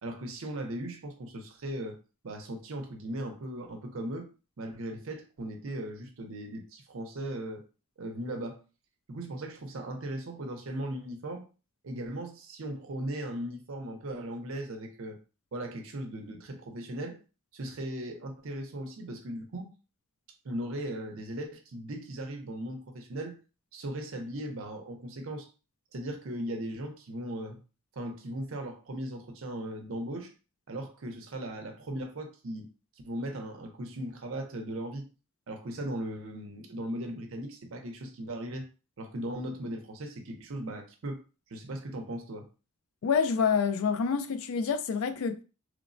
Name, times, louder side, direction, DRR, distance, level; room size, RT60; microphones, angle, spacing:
voice 1, 0.0-2.0 2.2-4.3 4.6-7.6 8.0-8.6 9.1-11.5 11.8-15.2 15.5-17.2 17.5-19.7 20.4-23.4 23.7-25.5 25.9-27.6 28.0-30.3 30.7-32.7 33.0-35.0 35.5-38.7 39.0-41.2 41.5-42.5, right 1 dB, 60° right, 0.6 m, -38 dB
voice 2, 43.0-45.4, left 6 dB, 70° left, 0.3 m, -27 dB
3.1 x 2.0 x 2.5 m
head